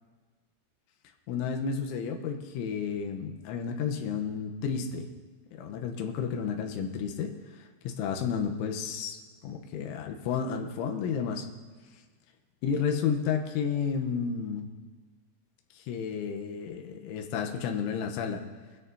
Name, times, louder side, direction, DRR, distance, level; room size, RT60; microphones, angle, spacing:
voice 1, 1.3-5.1 5.5-7.3 7.8-11.5 12.6-14.7 15.7-18.4, left 6 dB, 85° left, 2 dB, 3.4 m, -31 dB
22.5 x 13.0 x 2.8 m, 1.4 s
omnidirectional pair, 5.5 m